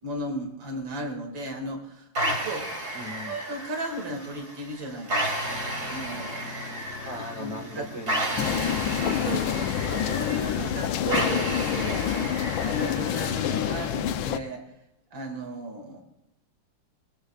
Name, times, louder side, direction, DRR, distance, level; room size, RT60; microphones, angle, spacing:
voice 1, 0.0-2.7 3.3-5.6 5.8-6.8 7.1-7.9 9.0-12.3 12.6-14.6 15.1-16.0, equal, 80° right, 3 dB, 3.0 m, -35 dB
sound 1, 2.2-14.1, right 1 dB, 55° right, 3.5 m, -33 dB
voice 2, 2.9-3.4 7.0-8.9, left 1 dB, 25° right, 4 dB, 0.8 m, -39 dB
sound 2, 5.4-11.7, left 4 dB, 50° left, 1.0 m, -44 dB
sound 3, 8.4-14.4, left 10 dB, 85° left, 1.4 m, -27 dB
22.0 x 20.5 x 2.4 m, 0.86 s
omnidirectional pair, 2.1 m